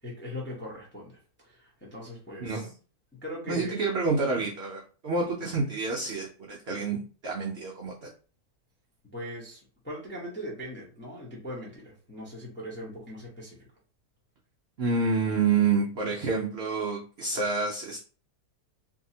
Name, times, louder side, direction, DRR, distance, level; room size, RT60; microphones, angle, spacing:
voice 1, 0.0-2.7 3.2-3.8 9.1-13.6, equal, 15° left, -3 dB, 0.5 m, -40 dB
voice 2, 2.4-2.7 3.5-8.1 14.8-18.0, right 4 dB, 80° right, -2 dB, 0.5 m, -28 dB
2.7 x 2.7 x 2.7 m, 0.38 s
omnidirectional pair, 1.7 m